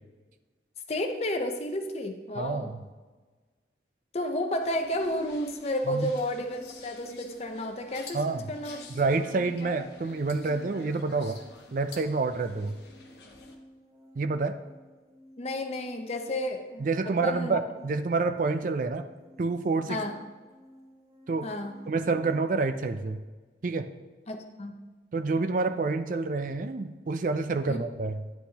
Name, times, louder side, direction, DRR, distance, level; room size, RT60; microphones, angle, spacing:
voice 1, 0.9-2.7 4.1-8.2 8.5-8.8 15.4-17.6 19.9-20.1 21.4-21.7 24.3-24.7 27.7-27.8, left 1 dB, 35° left, 5 dB, 0.7 m, -32 dB
voice 2, 2.4-2.8 5.9-6.1 8.1-8.5 8.9-11.4 11.7-12.8 14.2-14.6 16.8-19.0 19.4-20.0 21.3-21.5 21.9-23.2 23.6-23.9 25.1-28.2, right 3 dB, 45° right, 10 dB, 0.4 m, -28 dB
sound 1, 4.2-22.8, equal, 20° right, 1.2 m, -55 dB
sound 2, 4.6-13.5, left 3 dB, 70° left, 1.1 m, -48 dB
10.0 x 8.1 x 2.8 m, 1.3 s
head